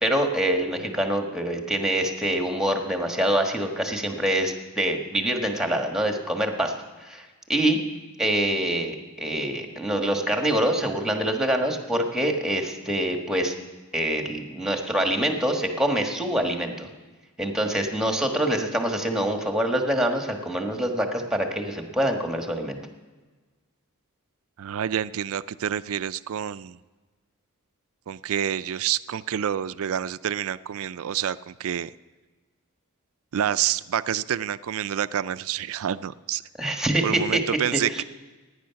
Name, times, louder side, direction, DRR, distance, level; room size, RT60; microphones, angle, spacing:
voice 1, 0.0-6.7 7.0-7.8 8.2-13.5 13.9-16.9 17.4-22.8 36.6-37.4 37.7-38.0, right 1 dB, 5° right, 3 dB, 1.4 m, -25 dB
voice 2, 24.6-26.8 28.1-31.9 33.3-36.4 37.0-38.0, right 9 dB, 65° right, 16 dB, 0.4 m, -28 dB
16.5 x 9.9 x 5.8 m, 1.3 s
head